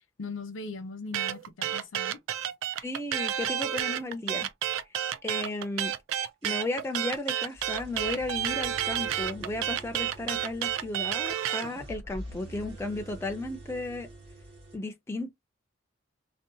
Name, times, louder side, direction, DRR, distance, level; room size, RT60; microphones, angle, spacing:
voice 1, 0.2-2.2, left 3 dB, 85° left, 0.7 m, -39 dB
sound 1, 1.1-11.7, right 11 dB, 80° right, 0.3 m, -30 dB
voice 2, 2.8-4.5 5.2-5.9 6.4-14.1 14.7-15.3, left 2 dB, 15° left, 0.4 m, -34 dB
sound 2, 6.2-14.8, right 1 dB, 60° right, 1.3 m, -46 dB
2.7 x 2.1 x 2.5 m
head